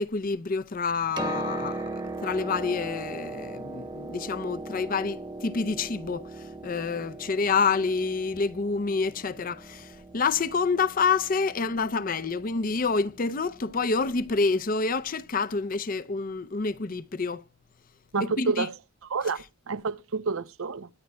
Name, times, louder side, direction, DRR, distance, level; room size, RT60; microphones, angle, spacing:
voice 1, 0.0-1.9 2.2-6.2 6.6-17.4 18.2-18.7, left 4 dB, 40° left, 0.5 m, -28 dB
Piano, 0.9-14.6 15.7-15.8, right 2 dB, 20° right, 1.1 m, -39 dB
voice 2, 18.1-18.7 19.1-20.9, right 4 dB, 75° right, 0.6 m, -29 dB
23.0 x 9.3 x 2.2 m
head